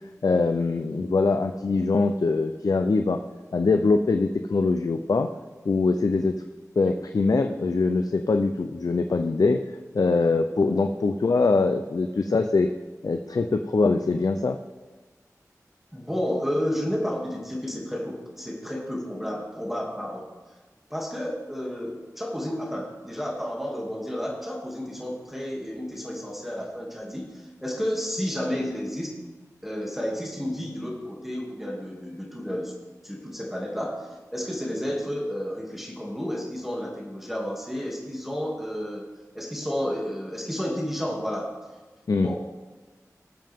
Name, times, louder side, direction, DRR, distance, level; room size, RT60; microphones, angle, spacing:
voice 1, 0.2-3.2 3.5-5.3 5.7-6.4 6.8-9.6 9.9-12.7 13.0-14.6 42.1-42.3, left 3 dB, 75° left, 6 dB, 0.5 m, -23 dB
voice 2, 15.9-20.2 20.9-29.2 29.6-32.7 33.0-39.0 39.3-41.5 42.2-42.3, equal, 5° right, -2 dB, 2.5 m, -31 dB
19.5 x 7.6 x 3.6 m, 1.3 s
wide cardioid pair, 45°, 6 cm